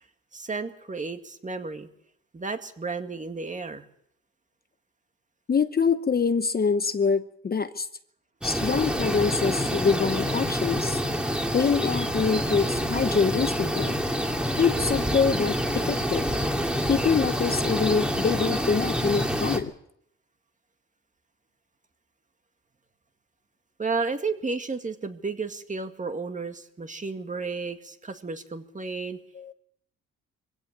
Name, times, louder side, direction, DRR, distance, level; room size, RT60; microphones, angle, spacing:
voice 1, 0.3-1.9 2.3-3.9 23.8-29.2, right 4 dB, 25° right, 7 dB, 2.0 m, -32 dB
voice 2, 5.5-7.9 8.4-11.0 11.5-14.0 14.6-16.3 16.9-19.7 29.3-29.5, left 5 dB, 30° left, 11 dB, 0.9 m, -25 dB
sound 1, 8.4-19.6, equal, 5° right, 2.5 m, -27 dB
23.0 x 16.5 x 7.4 m, 0.73 s
cardioid pair, 90°, 30 cm